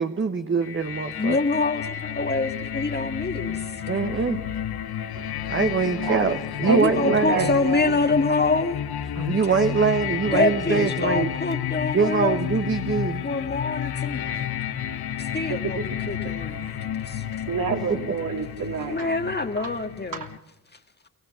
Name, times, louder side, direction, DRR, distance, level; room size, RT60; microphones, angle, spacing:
voice 1, 0.0-1.4 3.9-4.4 5.5-7.5 9.2-11.3 11.9-13.3 17.7-17.8, right 5 dB, 30° right, 6 dB, 1.3 m, -23 dB
sound 1, 0.6-20.4, left 10 dB, 70° left, 1.1 m, -31 dB
voice 2, 1.2-3.7 6.6-8.8 10.3-12.4 13.2-14.5 15.2-17.2 18.9-20.3, left 3 dB, 25° left, 6 dB, 1.9 m, -26 dB
voice 3, 6.0-6.4 6.6-7.9 9.2-9.3 15.5-15.6 16.6-16.7 17.5-19.1 19.6-19.7 20.1-20.3, right 5 dB, 55° right, 3 dB, 3.0 m, -29 dB
23.0 x 17.0 x 7.1 m, 0.84 s
supercardioid pair, 55°, 39 cm